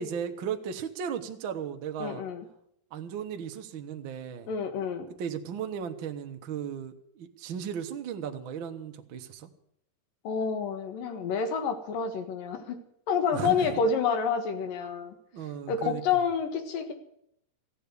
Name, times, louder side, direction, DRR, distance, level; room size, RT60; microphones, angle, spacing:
voice 1, 0.0-2.3 2.9-4.5 5.2-9.5 13.3-13.8 15.3-16.2, right 7 dB, 65° right, 5 dB, 1.2 m, -36 dB
voice 2, 2.0-2.4 4.5-5.1 10.2-12.8 13.1-15.1 15.7-16.9, left 6 dB, 75° left, 7 dB, 3.3 m, -28 dB
15.5 x 8.7 x 9.6 m, 0.73 s
omnidirectional pair, 4.0 m